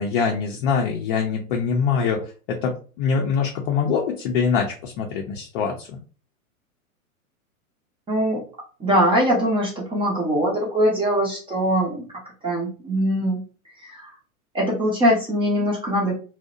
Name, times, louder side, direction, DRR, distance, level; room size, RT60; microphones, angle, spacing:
voice 1, 0.0-6.0, left 6 dB, 40° left, 0 dB, 0.5 m, -24 dB
voice 2, 8.1-8.4 8.8-12.1 12.4-13.4 13.8-14.1 14.5-16.1, equal, 10° right, -3 dB, 0.6 m, -22 dB
2.6 x 2.1 x 2.5 m, 0.37 s
hypercardioid pair, 105°, 43 cm